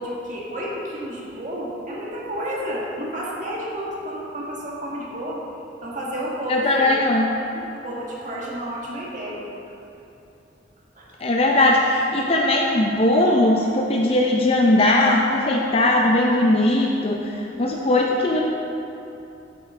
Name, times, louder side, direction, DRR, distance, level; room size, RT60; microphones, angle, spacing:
voice 1, 0.0-5.4 5.8-7.0 7.5-9.4 10.9-11.0, equal, 45° right, -5 dB, 1.7 m, -31 dB
voice 2, 6.5-7.3 11.2-18.4, left 1 dB, 30° left, -1 dB, 0.5 m, -19 dB
8.9 x 7.9 x 3.7 m, 2.8 s
head